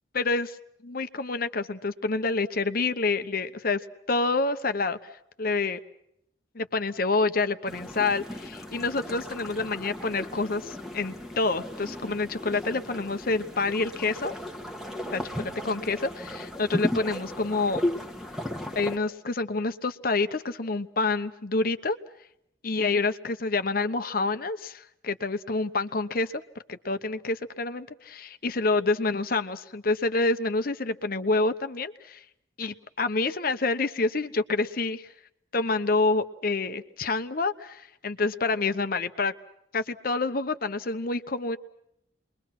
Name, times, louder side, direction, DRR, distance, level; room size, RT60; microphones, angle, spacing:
voice 1, 0.1-0.6 0.8-3.8 4.1-5.0 5.4-5.8 6.5-14.3 15.1-17.8 18.7-22.0 22.6-26.3 26.7-32.2 32.6-35.1 35.5-39.3 39.7-41.6, left 3 dB, 50° left, 10 dB, 1.0 m, -27 dB
sound 1, 7.7-19.0, left 1 dB, ahead, 1.5 m, -35 dB
28.5 x 22.5 x 5.9 m, 0.77 s
head